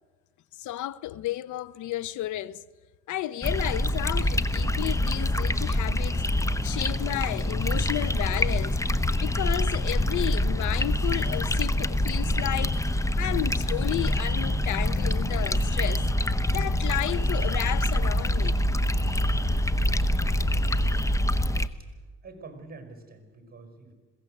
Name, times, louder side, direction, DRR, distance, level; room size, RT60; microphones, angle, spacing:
voice 1, 0.6-2.6 3.1-6.2 6.6-8.8 9.2-16.0 16.5-18.6, left 14 dB, 75° left, 0.6 m, -32 dB
sound 1, 3.4-21.7, left 1 dB, 10° left, 0.8 m, -25 dB
voice 2, 22.2-23.9, right 3 dB, 30° right, 5.0 m, -46 dB
21.0 x 17.0 x 7.7 m
cardioid pair, 90°, 30 cm